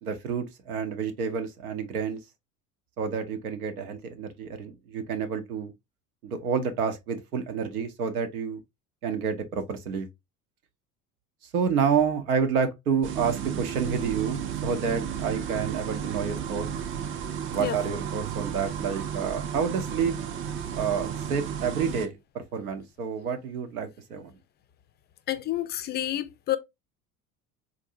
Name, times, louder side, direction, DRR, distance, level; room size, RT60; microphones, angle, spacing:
voice 1, 0.0-2.2 3.0-5.7 6.2-8.6 9.0-10.1 11.5-16.7 17.5-20.2 20.7-24.3, right 6 dB, 80° right, 0.7 m, -29 dB
sound 1, 13.0-22.1, right 8 dB, 30° right, 0.5 m, -33 dB
voice 2, 25.3-26.6, left 13 dB, 25° left, 0.4 m, -29 dB
3.8 x 2.6 x 2.5 m
figure-of-eight pair, 65°, 43 cm